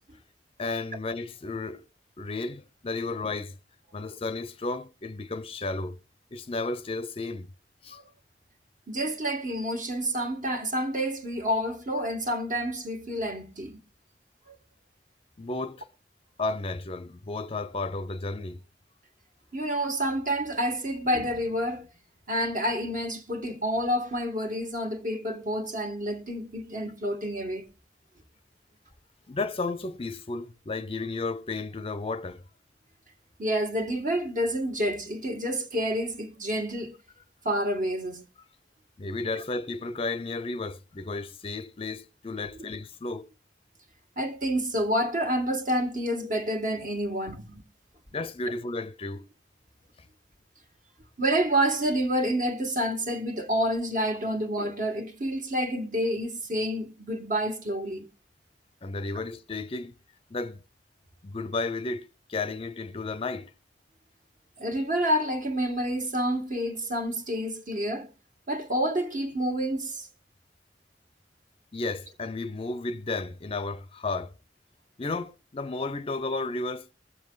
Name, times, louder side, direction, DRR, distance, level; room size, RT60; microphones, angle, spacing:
voice 1, 0.6-1.8 2.2-3.6 3.9-6.0 6.3-7.5 7.8-8.0 15.4-15.9 16.4-18.6 29.3-32.4 39.0-43.3 48.1-49.3 58.8-59.9 60.3-60.6 61.2-63.5 71.7-74.3 75.0-76.9, left 3 dB, 30° left, 0.6 m, -33 dB
voice 2, 8.9-13.8 14.5-14.6 19.5-21.9 22.3-27.7 33.4-37.0 37.4-38.2 44.2-47.6 51.2-58.1 64.6-68.1 68.5-70.1, equal, 45° right, 1.9 m, -28 dB
22.0 x 7.4 x 4.0 m
head